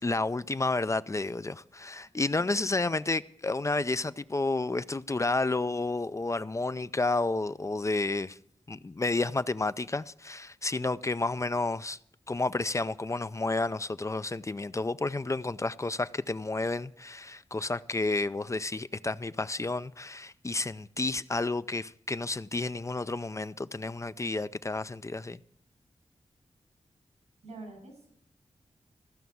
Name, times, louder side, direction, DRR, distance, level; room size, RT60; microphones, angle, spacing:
voice 1, 0.0-8.4 8.7-12.0 12.3-25.4, left 3 dB, 25° left, 0.4 m, -31 dB
voice 2, 2.0-2.6 27.4-28.1, right 2 dB, 90° right, 6.9 m, -48 dB
14.5 x 5.8 x 9.3 m
cardioid pair, 55°, 11 cm